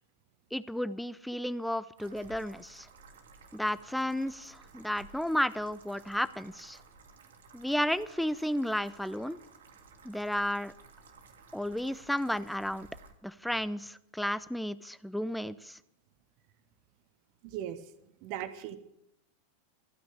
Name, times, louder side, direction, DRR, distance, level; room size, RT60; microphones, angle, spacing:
voice 1, 0.5-2.9 3.5-6.8 7.5-9.4 10.0-10.7 11.5-12.9 13.2-15.8, equal, ahead, 17 dB, 0.5 m, -33 dB
sound 1, 2.0-13.1, right 4 dB, 60° right, 2.0 m, -55 dB
voice 2, 17.4-17.8 18.2-18.8, right 11 dB, 45° right, 11 dB, 1.2 m, -38 dB
14.5 x 9.3 x 7.4 m, 0.80 s
figure-of-eight pair, 90°, 0 cm